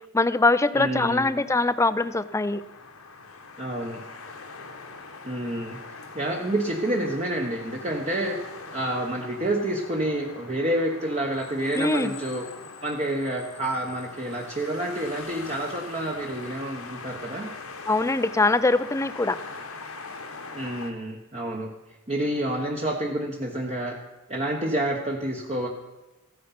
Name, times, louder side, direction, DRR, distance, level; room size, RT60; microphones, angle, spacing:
voice 1, 0.1-2.6 11.7-12.1 17.9-19.4, left 2 dB, 15° left, 14 dB, 0.4 m, -22 dB
voice 2, 0.7-1.2 3.6-4.0 5.2-5.8 6.1-8.4 8.7-12.4 12.8-17.5 20.5-21.7 22.1-24.0 24.3-25.7, right 1 dB, 30° right, -1 dB, 1.1 m, -28 dB
sound 1, 1.2-20.9, left 4 dB, 85° left, 1.8 m, -42 dB
15.0 x 9.4 x 5.8 m, 1.1 s
head